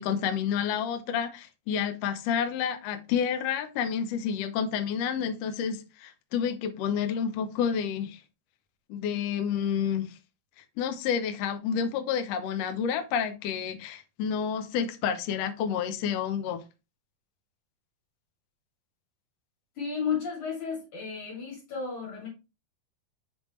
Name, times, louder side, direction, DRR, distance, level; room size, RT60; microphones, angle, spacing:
voice 1, 0.0-8.2 8.9-10.1 10.8-16.6, left 7 dB, 80° left, 1.5 m, -29 dB
voice 2, 19.8-22.3, left 6 dB, 60° left, 4.0 m, -33 dB
6.8 x 5.3 x 3.1 m
omnidirectional pair, 4.0 m